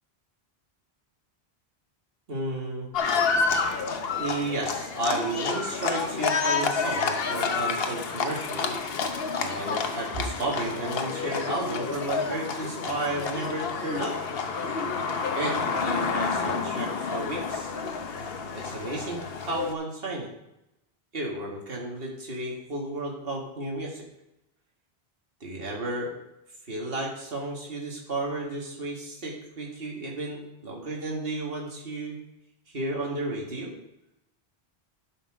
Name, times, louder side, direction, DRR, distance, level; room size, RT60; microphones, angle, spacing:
voice 1, 2.3-2.9 4.1-8.7 9.4-14.2 15.3-17.7 18.5-20.3 21.1-24.0 25.4-26.1 26.7-32.2 32.7-33.7, right 2 dB, 60° right, -2 dB, 2.1 m, -33 dB
Livestock farm animals working animals, 2.9-19.7, left 5 dB, 65° left, 1.0 m, -29 dB
11.5 x 5.5 x 4.9 m, 0.88 s
omnidirectional pair, 1.1 m